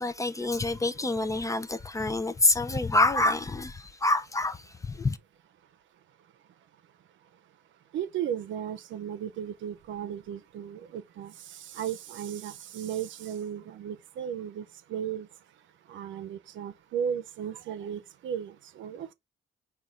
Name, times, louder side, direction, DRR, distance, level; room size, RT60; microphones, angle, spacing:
voice 1, 0.0-5.2, left 2 dB, 15° left, 0.4 m, -27 dB
voice 2, 7.9-11.3 11.7-14.6 14.9-15.3 15.9-19.1, right 9 dB, 75° right, 0.6 m, -35 dB
4.0 x 2.3 x 3.6 m
cardioid pair, 90°, 20 cm